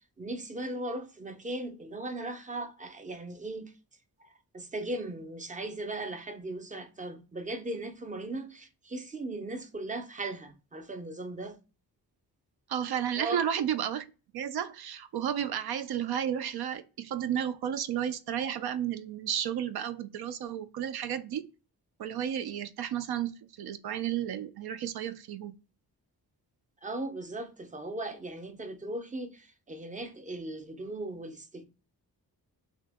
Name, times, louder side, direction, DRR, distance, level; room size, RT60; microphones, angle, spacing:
voice 1, 0.2-3.7 4.5-11.6 13.2-13.4 26.8-31.7, right 2 dB, 20° right, 0.5 m, -38 dB
voice 2, 12.7-14.0 14.3-21.5 22.0-25.5, right 9 dB, 75° right, 0.5 m, -32 dB
2.9 x 2.8 x 3.4 m
wide cardioid pair, 110°, 38 cm